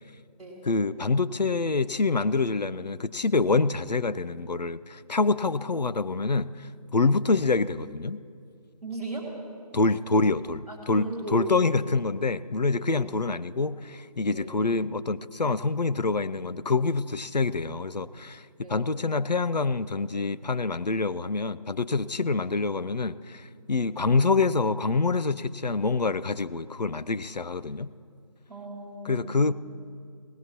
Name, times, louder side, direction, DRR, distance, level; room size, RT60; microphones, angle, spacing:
voice 1, 0.6-8.2 9.7-27.9 29.0-29.5, left 3 dB, 90° left, 15 dB, 0.5 m, -26 dB
voice 2, 8.8-9.3 10.7-11.9 12.8-13.0 14.3-14.5 18.6-18.9 28.5-29.5, right 2 dB, ahead, -14 dB, 1.5 m, -37 dB
18.0 x 17.5 x 3.0 m, 2.2 s
figure-of-eight pair, 165°, 21 cm